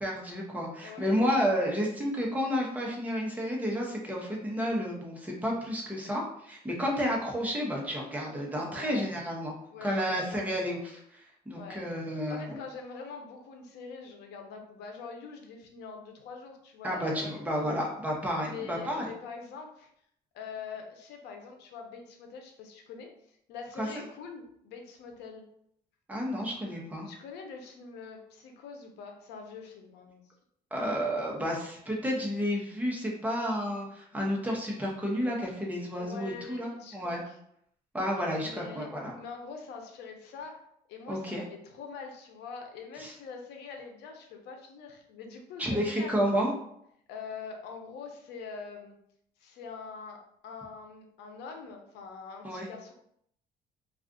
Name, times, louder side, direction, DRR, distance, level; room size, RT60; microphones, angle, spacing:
voice 1, 0.0-9.5 9.8-12.6 16.8-19.1 23.8-23.9 26.1-27.1 30.7-37.2 37.9-39.1 41.1-41.4 43.0-43.1 45.6-46.5 52.4-52.7, equal, 10° right, -2 dB, 0.8 m, -31 dB
voice 2, 0.8-1.2 8.7-9.1 9.7-10.4 11.5-11.8 12.3-17.9 18.4-19.9 20.3-25.5 27.1-30.2 36.0-37.4 38.4-38.9 39.2-40.6 40.9-46.1 47.1-48.9 49.4-52.9, left 5 dB, 85° left, 3 dB, 0.6 m, -44 dB
2.4 x 2.4 x 3.6 m, 0.72 s
cardioid pair, 110°, 17 cm